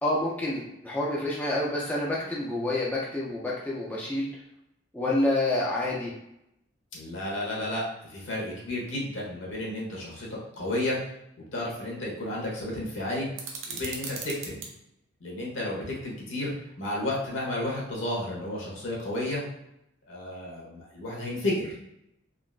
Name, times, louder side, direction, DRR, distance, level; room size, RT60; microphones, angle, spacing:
voice 1, 0.0-4.3 4.9-6.1, left 1 dB, 10° left, -5 dB, 0.4 m, -28 dB
voice 2, 6.9-11.0 11.5-13.3 13.7-14.6 15.2-19.4 20.1-21.8, left 1 dB, 70° left, -4 dB, 1.1 m, -32 dB
sound 1, 13.3-14.7, right 5 dB, 70° right, 0.6 m, -38 dB
3.7 x 2.4 x 2.4 m, 0.82 s
head